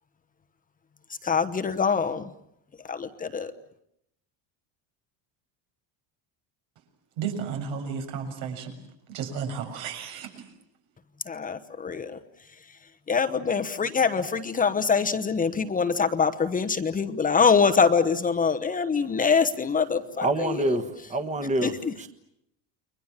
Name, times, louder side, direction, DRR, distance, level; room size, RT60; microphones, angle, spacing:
voice 1, 1.2-2.3 2.8-3.5 11.3-12.2 13.1-20.8 21.6-22.1, left 5 dB, 20° left, 8 dB, 1.0 m, -24 dB
voice 2, 7.2-8.7 9.1-10.4, right 6 dB, 85° right, 5 dB, 7.1 m, -33 dB
voice 3, 20.2-21.7 22.0-22.1, right 2 dB, 15° right, 8 dB, 1.5 m, -26 dB
30.0 x 23.0 x 7.4 m, 0.77 s
cardioid pair, 170°, 45 cm